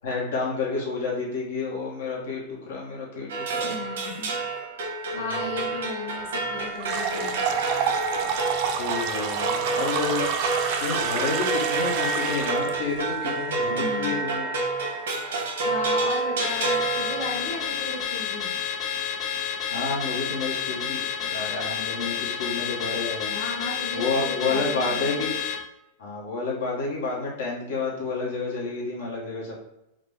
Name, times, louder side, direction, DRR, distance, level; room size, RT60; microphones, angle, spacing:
voice 1, 0.0-3.8 5.1-5.6 8.7-10.3 10.8-14.6 19.7-23.3 23.9-25.3 26.0-29.5, left 3 dB, 85° left, -4 dB, 1.0 m, -30 dB
sound 1, 3.3-17.7, right 3 dB, 85° right, 0.9 m, -28 dB
voice 2, 3.6-4.3 5.1-7.4 13.7-14.3 15.6-18.5 23.3-25.2, left 3 dB, 60° left, -3 dB, 1.1 m, -35 dB
sound 2, 6.8-12.7, right 7 dB, 45° right, 0.4 m, -29 dB
Car / Alarm, 16.4-25.7, left 8 dB, 30° left, 0.3 m, -30 dB
3.7 x 2.1 x 3.5 m, 0.89 s
supercardioid pair, 155°, 0 cm